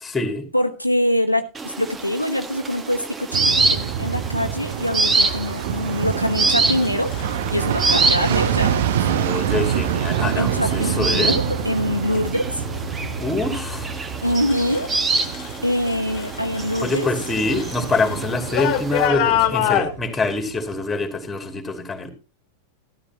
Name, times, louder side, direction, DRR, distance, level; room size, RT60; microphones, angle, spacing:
voice 1, 0.0-0.4 9.1-11.3 13.2-13.9 16.8-22.1, left 3 dB, 10° left, 2.5 m, -25 dB
voice 2, 0.5-7.1 7.5-9.1 10.4-12.6 14.2-14.9 15.6-17.1, left 1 dB, 90° left, 1.0 m, -24 dB
sound 1, 1.5-19.1, right 3 dB, 20° right, 1.2 m, -26 dB
sound 2, 3.3-20.8 21.1-21.2, right 9 dB, 55° right, 0.8 m, -27 dB
sound 3, 6.7-7.4 8.5-8.8 9.4-9.9 10.4-10.9 11.3-15.6 15.8-19.9, left 11 dB, 45° left, 1.6 m, -27 dB
14.0 x 13.0 x 2.9 m
figure-of-eight pair, 90°, 0 cm